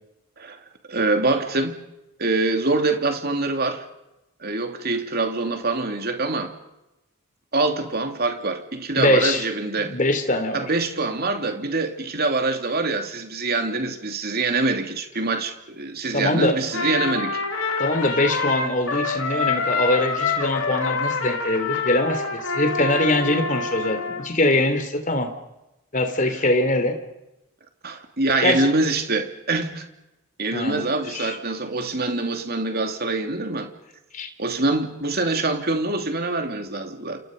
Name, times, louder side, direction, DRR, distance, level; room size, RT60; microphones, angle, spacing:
voice 1, 0.9-1.8 2.2-3.9 4.4-6.5 7.5-10.0 10.5-17.4 27.8-29.9 30.4-33.7 34.4-37.2, right 3 dB, 45° right, 2.9 m, -24 dB
voice 2, 9.0-9.4 9.8-10.7 16.1-16.5 17.8-25.3 25.9-26.9 28.4-28.7 30.5-31.4 34.1-34.3, left 1 dB, 35° left, 3.1 m, -23 dB
Trumpet, 16.7-24.3, left 4 dB, 75° left, 4.7 m, -26 dB
29.0 x 28.0 x 5.3 m
head